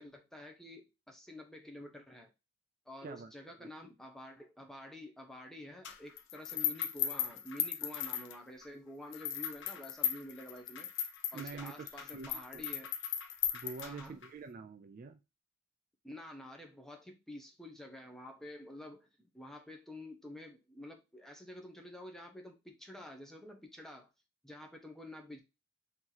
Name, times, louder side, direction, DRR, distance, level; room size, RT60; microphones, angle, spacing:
voice 1, 0.0-2.3 2.9-10.9 11.3-12.9 13.8-14.2 16.0-24.1 24.4-25.4, left 1 dB, ahead, 0.6 m, -49 dB
sound 1, 5.8-8.7 9.1-14.3, left 10 dB, 60° left, 0.6 m, -37 dB
voice 2, 11.3-12.6 13.5-15.2, right 4 dB, 40° right, 0.3 m, -46 dB
3.0 x 2.7 x 3.9 m
head